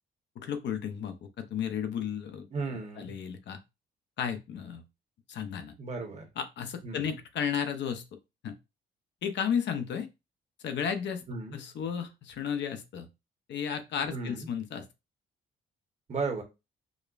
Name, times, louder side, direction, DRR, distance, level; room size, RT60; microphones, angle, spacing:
voice 1, 0.4-2.5 3.0-3.6 4.2-4.8 5.3-5.7 6.4-8.0 8.4-8.5 9.2-10.1 10.6-11.2 11.5-13.1 13.5-14.8, left 7 dB, 65° left, 7 dB, 0.6 m, -33 dB
voice 2, 2.5-3.1 5.8-6.3 6.8-7.1 11.3-11.6 14.1-14.5 16.1-16.4, right 4 dB, 35° right, 3 dB, 1.1 m, -35 dB
5.0 x 2.1 x 2.4 m, 0.25 s
cardioid pair, 90°, 20 cm